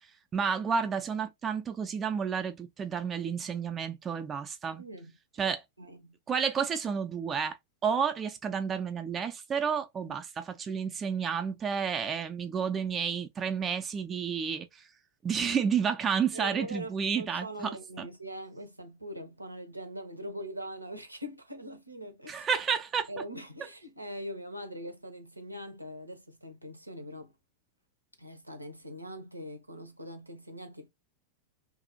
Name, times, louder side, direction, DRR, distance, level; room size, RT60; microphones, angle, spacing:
voice 1, 0.3-4.8 5.4-5.6 6.3-7.6 7.8-14.8 15.2-17.7 18.0-18.1 22.3-23.1, right 6 dB, 20° right, 0.4 m, -31 dB
voice 2, 4.8-5.1 5.5-6.2 10.1-10.2 16.3-22.5 23.1-27.3 28.2-30.9, equal, 85° right, 0.6 m, -42 dB
2.7 x 2.4 x 2.6 m
figure-of-eight pair, 90°, 0 cm